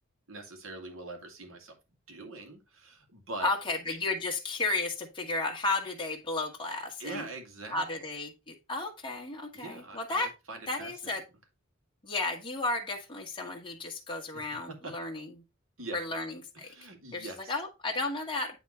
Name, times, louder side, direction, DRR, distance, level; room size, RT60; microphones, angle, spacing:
voice 1, 0.3-1.8 2.1-3.5 7.0-7.8 9.5-10.9 15.8-16.0 16.5-17.5, right 2 dB, 90° right, 2.4 m, -43 dB
voice 2, 3.4-7.3 7.7-10.3 10.7-11.2 12.0-15.3 15.9-16.7 17.1-18.6, left 2 dB, 25° left, 1.4 m, -33 dB
9.2 x 3.6 x 4.2 m
head